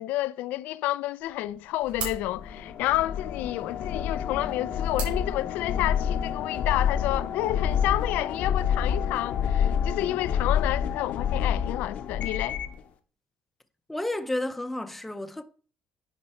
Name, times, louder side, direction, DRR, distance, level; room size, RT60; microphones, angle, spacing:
voice 1, 0.0-12.6, left 15 dB, 85° left, 0.4 m, -30 dB
sound 1, 1.2-6.2, right 5 dB, 60° right, 4.2 m, -42 dB
sound 2, 2.2-12.8, left 8 dB, 55° left, 0.7 m, -28 dB
voice 2, 13.9-15.4, left 1 dB, 5° left, 0.5 m, -31 dB
9.9 x 4.3 x 4.2 m
cardioid pair, 150°, 3 cm